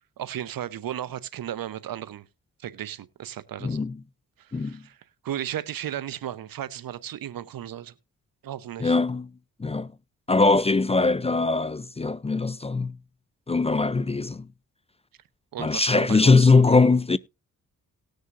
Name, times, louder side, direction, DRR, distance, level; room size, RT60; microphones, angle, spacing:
voice 1, 0.2-2.3 2.6-3.8 4.4-5.0 5.2-7.9 8.4-9.0 15.5-16.5, right 11 dB, 70° right, 0.9 m, -35 dB
voice 2, 3.6-4.0 4.5-4.8 8.8-9.3 9.6-9.9 10.3-13.0 13.5-14.5 15.6-17.2, left 3 dB, 20° left, 0.4 m, -21 dB
19.0 x 6.5 x 2.5 m
cardioid pair, 60°, 35 cm